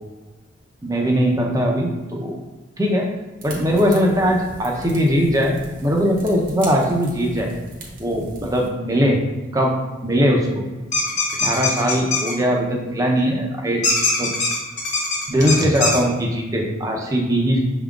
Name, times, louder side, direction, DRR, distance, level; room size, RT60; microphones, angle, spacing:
voice 1, 0.8-2.4 2.8-3.1 3.4-5.6 5.8-7.5 8.0-9.2 9.5-9.8 10.0-10.5 11.4-13.8 14.2-14.3 15.3-17.6, equal, 15° right, 0 dB, 0.5 m, -20 dB
sound 1, 3.4-8.7, right 1 dB, 40° right, 0.8 m, -38 dB
sound 2, 10.9-12.3 13.8-16.0, left 3 dB, 35° left, 1.0 m, -21 dB
5.9 x 3.6 x 2.4 m, 1.2 s
head